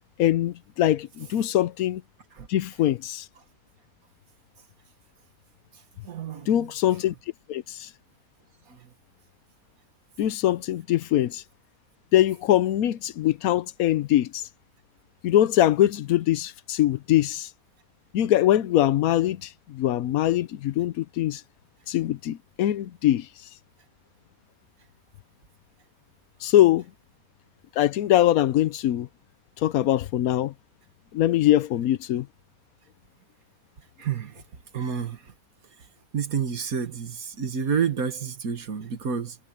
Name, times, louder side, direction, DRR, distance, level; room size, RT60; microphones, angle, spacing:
voice 1, 0.2-2.0 2.5-3.3 6.5-7.1 7.5-7.9 10.2-11.4 12.1-14.4 15.2-17.5 18.1-21.4 21.9-23.3 26.4-26.8 27.8-29.1 29.6-30.5 31.1-32.3, left 13 dB, 90° left, 1.2 m, -22 dB
voice 2, 6.0-6.7 8.7-8.9 34.0-34.4 34.7-35.2 36.1-39.4, right 6 dB, 85° right, 2.0 m, -29 dB
omnidirectional pair, 1.5 m